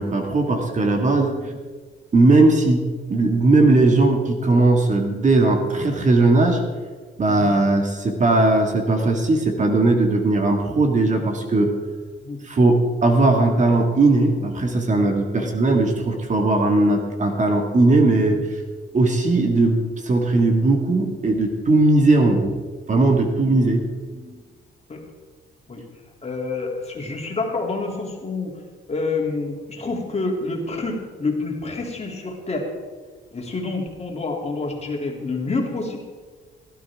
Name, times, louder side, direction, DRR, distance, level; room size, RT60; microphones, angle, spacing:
voice 1, 0.0-1.5 2.1-2.8 3.1-6.6 7.2-11.7 12.4-18.6 18.9-19.8 20.0-22.6 22.9-23.9 24.2-24.4, right 2 dB, 40° right, 3 dB, 2.1 m, -18 dB
voice 2, 26.2-28.5 28.9-32.7 33.3-36.2, left 3 dB, 30° left, 0 dB, 3.0 m, -28 dB
18.0 x 12.5 x 3.7 m, 1.4 s
cardioid pair, 90°, 20 cm